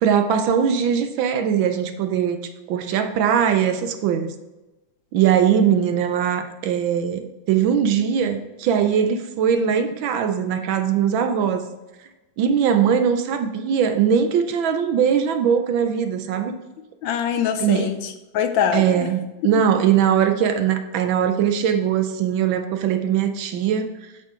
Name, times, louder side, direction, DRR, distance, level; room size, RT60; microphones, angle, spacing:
voice 1, 0.0-2.4 2.7-4.3 5.1-11.7 12.4-16.5 17.6-18.1 18.7-24.0, right 8 dB, 75° right, 8 dB, 1.4 m, -20 dB
voice 2, 17.0-19.1, left 8 dB, 75° left, 9 dB, 1.2 m, -24 dB
8.0 x 6.4 x 3.7 m, 1.1 s
omnidirectional pair, 2.3 m